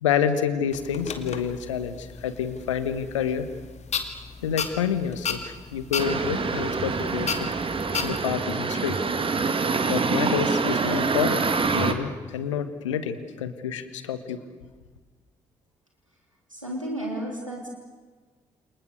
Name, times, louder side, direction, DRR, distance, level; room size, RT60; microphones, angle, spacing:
voice 1, 0.0-3.5 4.4-7.5 8.0-9.0 9.9-11.4 11.7-14.4, left 8 dB, 75° left, 11 dB, 1.4 m, -28 dB
sound 1, 0.7-8.2, left 6 dB, 45° left, 2.4 m, -35 dB
sound 2, 6.0-11.9, right 4 dB, 35° right, 2.3 m, -26 dB
voice 2, 16.5-17.7, right 1 dB, 90° right, -1 dB, 3.6 m, -32 dB
29.0 x 28.0 x 6.8 m, 1.4 s
figure-of-eight pair, 40°, 16 cm